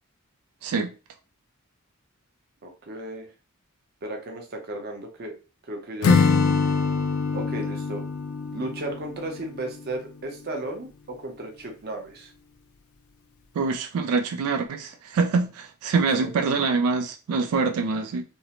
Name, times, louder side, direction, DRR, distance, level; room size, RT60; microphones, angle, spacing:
voice 1, 0.6-0.9 13.5-18.2, right 4 dB, 90° right, 0.3 m, -25 dB
voice 2, 2.6-3.3 4.0-5.3 5.6-6.2 7.3-8.0 8.5-10.9 11.2-12.3 16.2-16.3, right 1 dB, 45° right, 0.6 m, -34 dB
Acoustic guitar / Strum, 6.0-9.9, left 4 dB, 70° left, 0.4 m, -24 dB
2.6 x 2.0 x 2.8 m
head